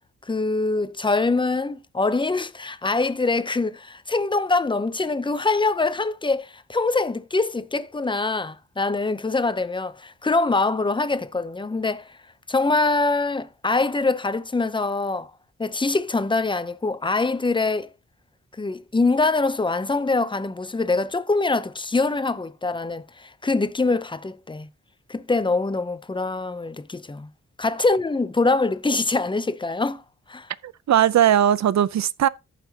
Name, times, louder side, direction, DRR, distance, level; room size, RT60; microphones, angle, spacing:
voice 1, 0.3-12.2 12.5-15.3 15.6-17.9 18.6-24.7 25.1-27.3 27.6-30.0 30.3-30.5, left 3 dB, 15° left, 0.6 m, -24 dB
voice 2, 30.6-32.3, right 10 dB, 70° right, 0.6 m, -19 dB
14.5 x 5.9 x 2.8 m
wide cardioid pair, 115°, 29 cm